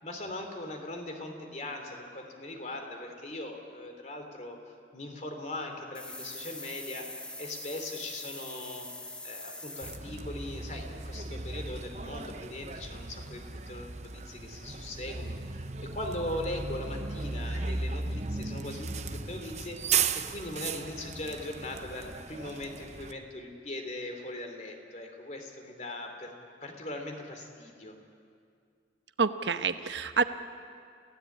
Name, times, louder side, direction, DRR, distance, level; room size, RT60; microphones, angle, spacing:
voice 1, 0.0-7.1 7.4-8.9 9.2-19.8 20.1-26.3 26.6-28.0, left 1 dB, 40° left, 4 dB, 3.1 m, -40 dB
sound 1, 5.9-10.0, left 1 dB, 5° left, 1.2 m, -43 dB
Bus, 9.8-23.1, right 5 dB, 40° right, 0.9 m, -36 dB
voice 2, 29.2-30.2, right 5 dB, 85° right, 9 dB, 1.1 m, -27 dB
28.0 x 16.5 x 8.6 m, 2.3 s
head